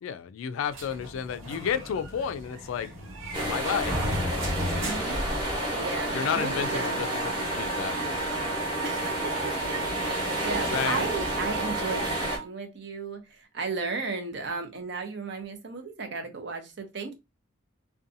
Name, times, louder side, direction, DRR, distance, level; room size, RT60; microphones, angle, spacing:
voice 1, 0.0-2.9 3.5-4.0 6.1-8.2 10.7-11.1, left 8 dB, 85° left, 0.3 m, -31 dB
sound 1, 0.7-6.0, equal, 85° right, 0.9 m, -35 dB
sound 2, 3.3-12.4, right 1 dB, 25° right, 0.9 m, -30 dB
voice 2, 4.5-5.2 5.7-7.0 8.8-17.1, right 4 dB, 60° right, 0.6 m, -35 dB
Wind instrument woodwind instrument, 6.1-12.5, right 5 dB, 15° left, 0.6 m, -36 dB
2.6 x 2.2 x 2.6 m
head